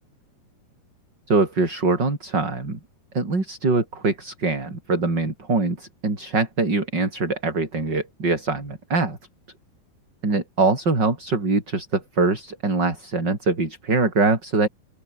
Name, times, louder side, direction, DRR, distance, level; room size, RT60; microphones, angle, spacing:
voice 1, 1.3-2.8 3.1-9.2 10.2-14.7, right 3 dB, 30° right, 5.7 m, -23 dB
open air
omnidirectional pair, 4.2 m